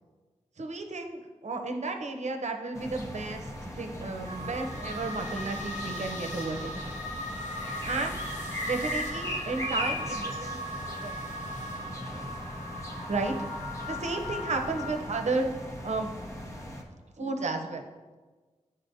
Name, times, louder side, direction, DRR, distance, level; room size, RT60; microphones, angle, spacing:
voice 1, 0.6-6.8 7.8-8.2 8.7-11.3 13.1-13.3 13.9-15.5 15.8-16.1 17.2-17.8, right 3 dB, 65° right, 4 dB, 0.7 m, -33 dB
sound 1, 2.7-16.8, equal, 25° left, 0.9 m, -38 dB
sound 2, 4.2-15.0, left 1 dB, 80° left, 1.2 m, -38 dB
10.5 x 4.1 x 2.7 m, 1.3 s
wide cardioid pair, 75°, 13 cm